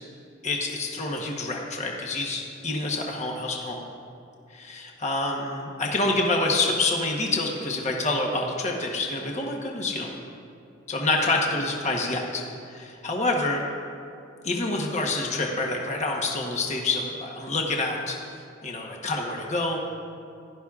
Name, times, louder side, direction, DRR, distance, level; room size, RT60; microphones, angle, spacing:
voice 1, 0.4-3.8 4.5-10.1 10.9-13.6 14.4-18.2 18.6-19.8, left 2 dB, 35° left, 0 dB, 1.0 m, -27 dB
16.5 x 11.5 x 2.4 m, 2.5 s
head